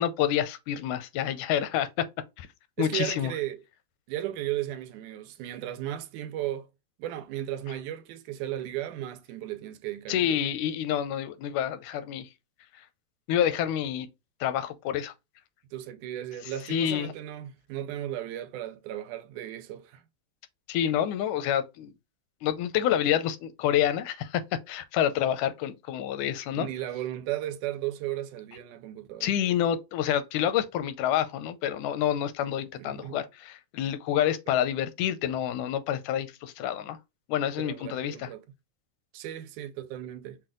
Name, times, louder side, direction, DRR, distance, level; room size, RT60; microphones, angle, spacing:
voice 1, 0.0-2.1 2.4-2.5 2.8-3.3 10.1-12.3 13.3-14.1 14.4-15.1 16.7-17.1 20.7-21.9 22.4-26.7 29.2-37.0 37.3-38.3, left 10 dB, 85° left, 2.1 m, -28 dB
voice 2, 2.8-3.6 4.1-6.7 7.0-10.4 15.7-20.0 26.5-29.3 32.7-33.2 34.5-34.6 37.6-38.5 39.1-40.4, right 13 dB, 90° right, 2.1 m, -35 dB
5.9 x 2.2 x 3.7 m
omnidirectional pair, 3.5 m